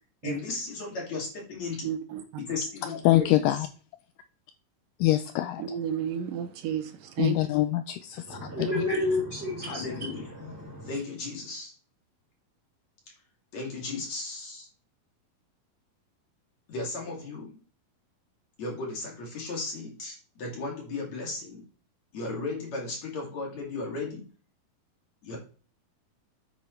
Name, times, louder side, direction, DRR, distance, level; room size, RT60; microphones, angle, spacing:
voice 1, 0.2-1.9 2.5-3.4 9.6-10.3 10.9-11.7 13.5-14.7 16.7-17.5 18.6-21.6 22.1-24.2 25.2-25.4, left 3 dB, 50° left, 3.7 m, -35 dB
voice 2, 1.8-2.4 5.6-7.4, right 9 dB, 75° right, 2.4 m, -32 dB
voice 3, 3.0-3.7 5.0-5.6 7.2-8.8, left 15 dB, 80° left, 2.1 m, -25 dB
voice 4, 8.2-11.0, left 2 dB, 15° right, 5.0 m, -31 dB
9.2 x 8.6 x 3.2 m
omnidirectional pair, 4.1 m